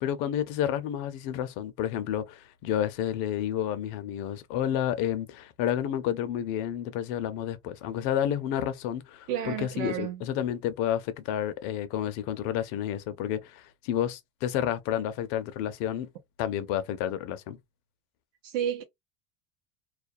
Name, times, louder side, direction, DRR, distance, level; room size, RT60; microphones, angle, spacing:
voice 1, 0.0-16.1 16.4-17.6, left 10 dB, 55° left, 0.6 m, -30 dB
voice 2, 9.3-10.3 18.4-18.8, right 9 dB, 50° right, 0.7 m, -31 dB
2.4 x 2.1 x 2.6 m
supercardioid pair, 130°, 40 cm